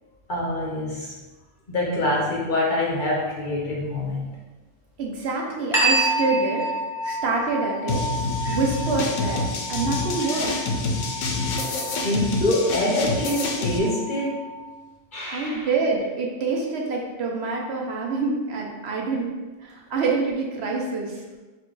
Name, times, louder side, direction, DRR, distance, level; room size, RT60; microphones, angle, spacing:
voice 1, 0.3-1.1 1.7-4.4 12.0-14.4 15.1-15.7, left 1 dB, 50° left, -3 dB, 0.7 m, -25 dB
voice 2, 5.0-6.6 7.0-8.0 8.5-10.5 15.3-19.3 19.6-21.1, right 3 dB, 65° right, -1 dB, 0.8 m, -26 dB
sound 1, 5.7-14.8, right 2 dB, ahead, 0.9 m, -29 dB
sound 2, 7.9-13.8, left 3 dB, 80° left, 1.0 m, -27 dB
4.5 x 2.3 x 3.7 m, 1.2 s
omnidirectional pair, 1.3 m